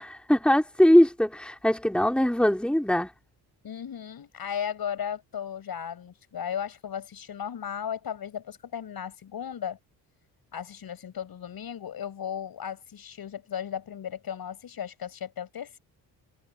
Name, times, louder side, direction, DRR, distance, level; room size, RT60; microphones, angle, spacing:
voice 1, 0.0-3.1, equal, ahead, 3.7 m, -21 dB
voice 2, 3.6-9.8 10.5-15.8, left 8 dB, 55° left, 6.7 m, -35 dB
supercardioid pair, 70°, 42 cm